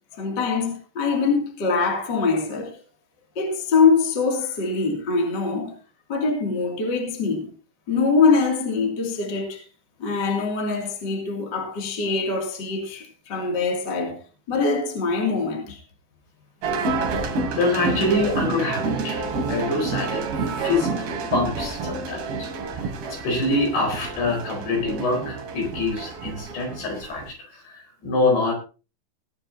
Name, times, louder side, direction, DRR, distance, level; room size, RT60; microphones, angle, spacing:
voice 1, 0.2-2.8 3.3-5.8 6.1-7.5 7.9-9.6 10.0-14.2 14.5-15.8, left 4 dB, 30° left, 2.5 m, -23 dB
sound 1, 16.6-27.3, right 4 dB, 70° right, 4.5 m, -29 dB
voice 2, 17.5-20.9 21.3-22.8 23.1-28.5, left 2 dB, 60° left, 6.6 m, -25 dB
20.5 x 10.0 x 2.8 m
omnidirectional pair, 5.3 m